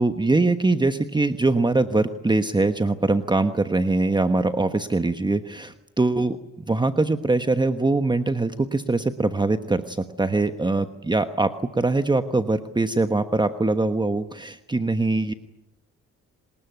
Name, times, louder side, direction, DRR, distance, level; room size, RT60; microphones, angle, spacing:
voice 1, 0.0-6.4 6.7-15.3, right 2 dB, 15° right, 9 dB, 1.2 m, -22 dB
26.5 x 20.0 x 9.4 m, 0.95 s
cardioid pair, 90°, 30 cm